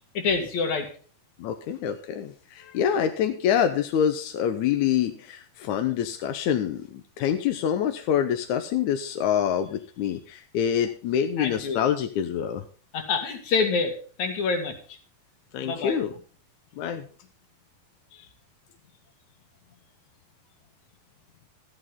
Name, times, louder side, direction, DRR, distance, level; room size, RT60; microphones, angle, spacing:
voice 1, 0.1-0.9 11.4-11.8 12.9-14.8 15.6-16.0, left 4 dB, 55° left, 6 dB, 3.2 m, -26 dB
voice 2, 1.4-12.6 15.5-16.1 16.8-17.1 18.1-18.3, left 9 dB, 70° left, 7 dB, 1.9 m, -26 dB
13.5 x 11.5 x 3.6 m, 0.40 s
omnidirectional pair, 4.1 m